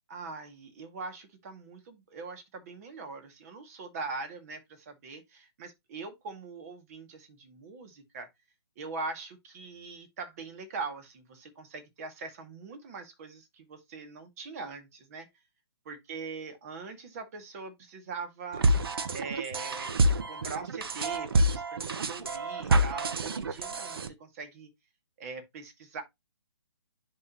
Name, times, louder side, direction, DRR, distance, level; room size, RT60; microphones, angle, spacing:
voice 1, 0.1-8.3 8.8-15.3 15.9-19.9 20.2-24.7 25.2-26.0, right 4 dB, 35° right, 2.0 m, -42 dB
sound 1, 18.5-24.1, right 1 dB, 55° right, 1.0 m, -27 dB
10.5 x 3.9 x 2.9 m
figure-of-eight pair, 135°, 15 cm